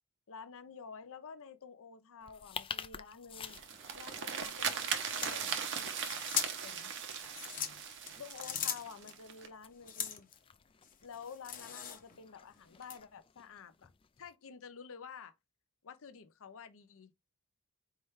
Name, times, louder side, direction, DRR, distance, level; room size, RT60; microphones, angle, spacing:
voice 1, 0.3-3.6 3.9-5.8 6.6-6.9 8.2-10.3 11.0-13.9 14.2-15.3 15.8-17.1, left 6 dB, 65° left, 0.6 m, -50 dB
sound 1, 2.2-14.3, left 7 dB, 25° left, 0.3 m, -51 dB
sound 2, 3.4-9.5, right 7 dB, 55° right, 0.8 m, -39 dB
sound 3, 5.0-6.8 7.2-9.1 9.8-10.4 10.8-12.2 12.8-13.0, left 8 dB, 40° left, 0.8 m, -39 dB
4.3 x 3.5 x 3.2 m
head